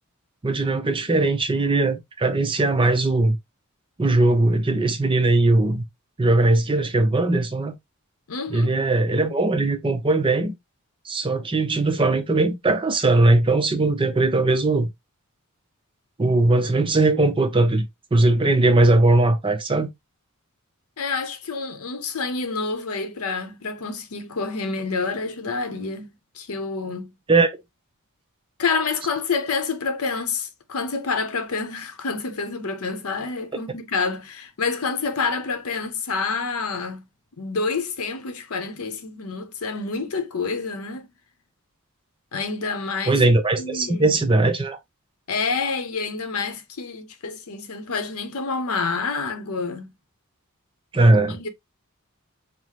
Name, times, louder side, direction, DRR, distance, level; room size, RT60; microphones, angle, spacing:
voice 1, 0.4-3.4 4.0-5.8 6.2-7.7 8.5-10.5 11.1-14.9 16.2-19.9 27.3-27.5 43.1-44.8 50.9-51.4, right 2 dB, 25° right, 0.6 m, -19 dB
voice 2, 8.3-8.7 21.0-27.1 28.6-37.0 37.4-41.1 42.3-43.2 43.6-44.2 45.3-49.9 51.2-51.5, left 4 dB, 70° left, 0.7 m, -28 dB
5.6 x 2.1 x 3.0 m
head